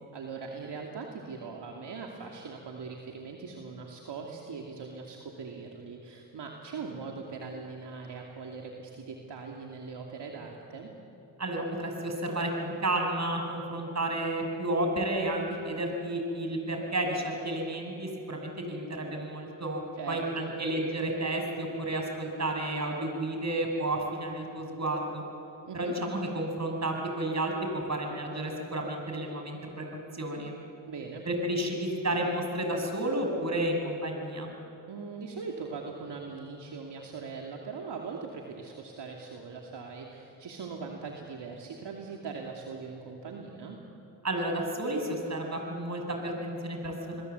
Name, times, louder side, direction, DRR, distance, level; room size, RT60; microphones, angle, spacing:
voice 1, 0.1-10.9 20.0-20.5 25.7-25.9 30.9-31.2 34.9-43.8, right 4 dB, 65° right, 0 dB, 2.7 m, -41 dB
voice 2, 11.4-25.2 25.7-29.8 30.1-30.5 31.2-34.5 44.2-47.2, right 1 dB, 35° right, 3 dB, 6.8 m, -31 dB
28.5 x 21.0 x 8.2 m, 2.9 s
supercardioid pair, 50°, 45 cm